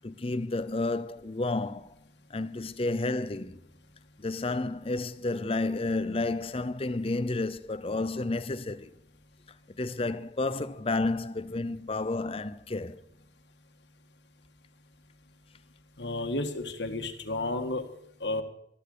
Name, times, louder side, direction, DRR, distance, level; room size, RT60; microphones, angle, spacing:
voice 1, 0.0-1.9 2.3-3.6 4.2-8.9 9.8-13.0, left 2 dB, 30° left, 0.7 m, -31 dB
voice 2, 16.0-17.8 18.2-18.4, left 2 dB, 70° left, 1.8 m, -32 dB
13.5 x 13.0 x 6.7 m
head